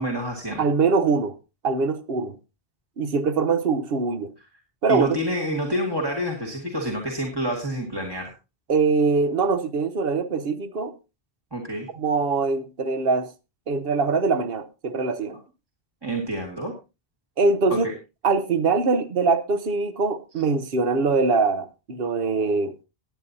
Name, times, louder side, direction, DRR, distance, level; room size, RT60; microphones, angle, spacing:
voice 1, 0.0-0.6 4.9-8.3 11.5-11.9 16.0-16.7 17.7-17.9, equal, 20° right, 1.9 m, -28 dB
voice 2, 0.6-1.3 1.6-2.4 3.0-4.3 4.8-5.2 8.7-10.9 11.9-13.3 13.7-15.4 17.4-17.9 18.2-22.7, right 4 dB, 60° right, 1.1 m, -23 dB
18.5 x 9.2 x 2.7 m
omnidirectional pair, 1.1 m